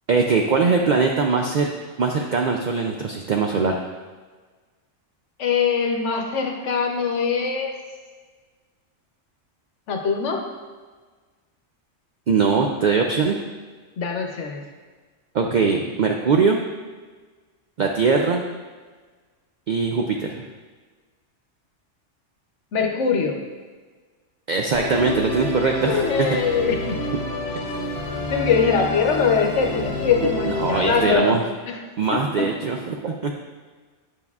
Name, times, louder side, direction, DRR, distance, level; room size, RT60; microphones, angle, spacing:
voice 1, 0.1-1.7 2.0-3.8 12.3-13.4 15.3-16.6 17.8-18.4 19.7-20.4 24.5-26.3 30.4-31.4 32.0-33.3, right 4 dB, 70° right, 2 dB, 0.4 m, -21 dB
voice 2, 5.4-7.7 9.9-10.5 14.0-14.6 22.7-23.4 25.6-27.0 28.3-31.4 31.7-31.8 32.1-32.5, left 5 dB, 70° left, 3 dB, 1.1 m, -22 dB
Musical instrument, 24.7-31.1, left 2 dB, 50° left, 1.1 m, -28 dB
9.3 x 5.3 x 2.4 m, 1.4 s
omnidirectional pair, 1.3 m